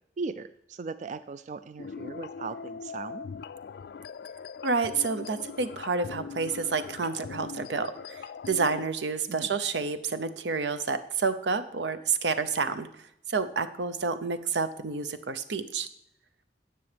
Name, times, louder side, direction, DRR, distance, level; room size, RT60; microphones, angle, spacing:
voice 1, 0.2-3.2 9.3-9.5, right 4 dB, 45° right, 13 dB, 0.3 m, -38 dB
sound 1, 1.8-8.9, left 5 dB, 65° left, 0.3 m, -41 dB
voice 2, 4.6-12.9 13.3-15.9, right 4 dB, 85° right, 10 dB, 0.7 m, -29 dB
17.0 x 6.9 x 3.4 m, 0.80 s
head